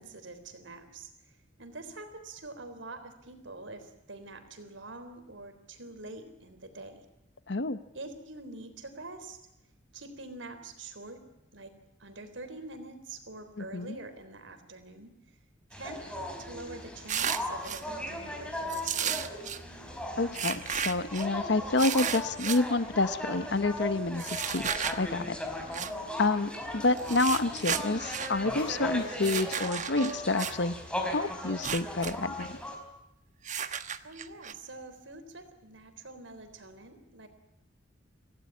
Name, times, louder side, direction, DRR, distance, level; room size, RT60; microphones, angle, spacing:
voice 1, 0.0-7.0 7.9-9.4 9.9-11.2 11.5-11.7 12.0-15.1 15.7-19.2 25.6-26.1 34.0-37.3, right 2 dB, 85° right, 9 dB, 3.7 m, -45 dB
voice 2, 7.5-7.8 13.6-13.9 20.2-24.7 25.0-25.4 26.2-30.7 31.0-32.6, left 2 dB, 65° left, 13 dB, 0.9 m, -28 dB
sound 1, 15.7-32.8, left 1 dB, 5° left, 4.4 m, -38 dB
sound 2, 17.1-17.8 18.7-19.6 20.3-21.3 21.8-22.6 24.2-25.0 25.7-25.9 27.0-28.3 29.2-30.5 31.5-32.1 32.4-32.5 33.4-34.5, right 8 dB, 40° right, 1.2 m, -33 dB
26.0 x 17.0 x 9.7 m, 0.91 s
head